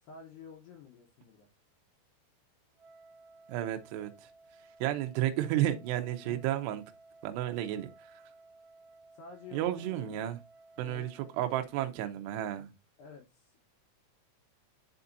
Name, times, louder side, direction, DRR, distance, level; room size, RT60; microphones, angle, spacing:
voice 1, 0.0-1.5 6.2-6.4 9.1-10.3 10.8-11.1 13.0-13.6, left 6 dB, 70° left, 2.7 m, -50 dB
Wind instrument woodwind instrument, 2.7-12.1, right 3 dB, 45° right, 2.7 m, -58 dB
voice 2, 3.5-4.3 4.8-6.8 7.2-8.2 9.5-10.4 10.8-12.7, right 13 dB, 80° right, 2.5 m, -32 dB
11.0 x 4.2 x 2.6 m
omnidirectional pair, 5.9 m